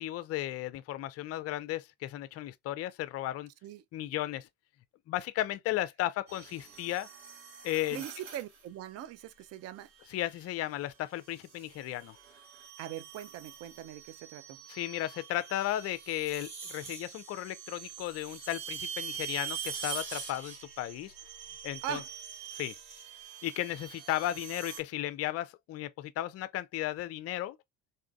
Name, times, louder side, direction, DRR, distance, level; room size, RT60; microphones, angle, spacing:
voice 1, 0.0-3.5 3.9-4.5 5.1-7.1 7.6-8.0 10.1-12.2 14.7-21.1 21.6-22.0 22.5-22.8 23.4-27.6, left 14 dB, 45° left, 0.5 m, -35 dB
sound 1, 6.3-8.7 10.0-10.4 11.2-24.8, right 7 dB, 75° right, 1.4 m, -44 dB
voice 2, 7.9-9.9 12.8-14.6 21.8-22.1, right 11 dB, 45° right, 0.5 m, -41 dB
4.0 x 2.5 x 2.4 m
supercardioid pair, 80°, 35 cm